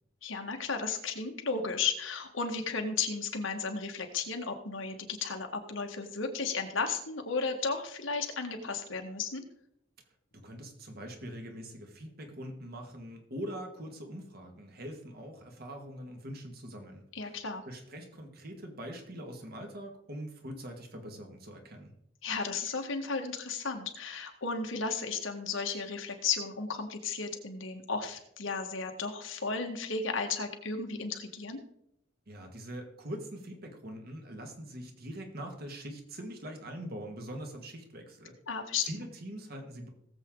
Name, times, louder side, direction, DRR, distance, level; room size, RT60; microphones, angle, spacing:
voice 1, 0.2-9.4 17.1-17.6 22.2-31.6 38.5-38.9, left 4 dB, 85° left, 4 dB, 1.8 m, -34 dB
voice 2, 10.3-17.3 17.6-21.9 32.3-38.4 38.8-39.9, equal, 50° right, 3 dB, 2.1 m, -43 dB
18.5 x 7.7 x 3.9 m, 0.77 s
head